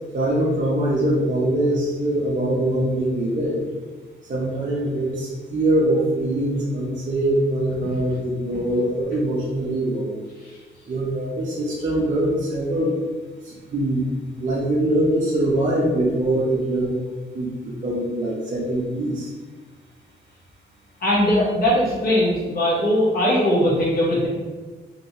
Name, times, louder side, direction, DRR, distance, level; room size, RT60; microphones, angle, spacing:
voice 1, 0.1-3.6 4.3-10.2 10.9-12.9 13.5-14.0 14.4-17.0 17.3-17.5 17.8-19.3, right 1 dB, 40° right, -6 dB, 0.7 m, -23 dB
voice 2, 21.0-24.3, left 1 dB, 55° left, -6 dB, 1.1 m, -20 dB
3.1 x 2.8 x 2.8 m, 1.3 s
cardioid pair, 120°, 19 cm